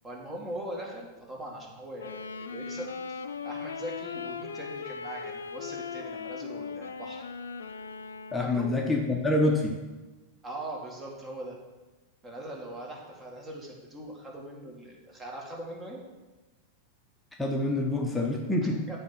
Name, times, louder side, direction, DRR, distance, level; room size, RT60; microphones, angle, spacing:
voice 1, 0.0-7.2 8.4-8.7 10.4-11.6 12.2-16.0 18.9-19.0, right 1 dB, 20° right, 0 dB, 2.0 m, -41 dB
Wind instrument woodwind instrument, 2.0-8.8, left 5 dB, 80° left, 0.4 m, -39 dB
voice 2, 8.3-9.8 17.4-18.8, left 2 dB, 10° left, 0 dB, 0.9 m, -26 dB
8.5 x 3.5 x 6.2 m, 1.2 s
hypercardioid pair, 95°, 0 cm